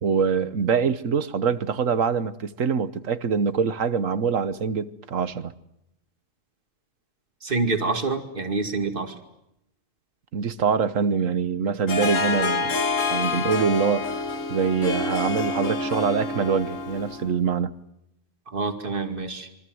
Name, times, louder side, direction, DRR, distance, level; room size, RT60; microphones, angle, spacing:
voice 1, 0.0-5.5 10.3-12.8 13.1-14.2 14.5-17.7, right 6 dB, 75° right, 1.6 m, -24 dB
voice 2, 7.4-9.1 18.5-19.5, right 3 dB, 40° right, 2.6 m, -27 dB
Harp, 11.9-17.3, left 3 dB, 80° left, 2.0 m, -27 dB
27.0 x 24.0 x 7.9 m
omnidirectional pair, 1.3 m